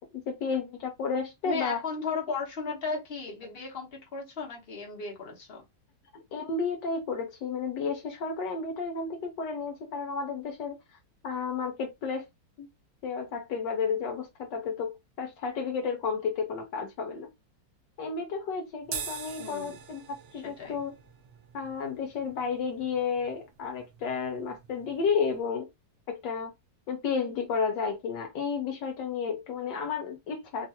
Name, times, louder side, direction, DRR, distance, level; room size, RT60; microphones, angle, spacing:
voice 1, 0.3-1.8 6.1-10.8 11.2-12.2 12.6-12.7 13.0-17.3 18.0-20.0 20.3-20.9 21.5-25.7 26.1-26.5 26.9-30.7, left 5 dB, 75° left, 1.2 m, -32 dB
voice 2, 1.4-5.6 19.4-19.8 20.3-20.8, left 4 dB, 40° left, 0.9 m, -35 dB
sound 1, 18.8-25.4, right 6 dB, 90° right, 0.6 m, -44 dB
3.6 x 2.4 x 2.7 m
omnidirectional pair, 2.0 m